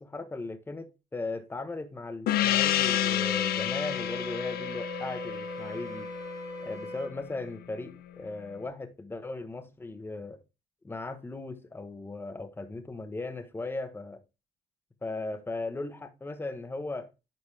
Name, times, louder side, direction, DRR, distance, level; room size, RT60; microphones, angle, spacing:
voice 1, 0.0-6.1 6.6-10.4 10.8-14.2 15.0-17.1, left 3 dB, 15° left, 1.1 m, -37 dB
Gong, 2.3-7.3, left 12 dB, 65° left, 0.6 m, -30 dB
Wind instrument woodwind instrument, 2.6-7.1, equal, 15° right, 1.7 m, -39 dB
9.8 x 4.1 x 3.3 m
cardioid pair, 110°, 17 cm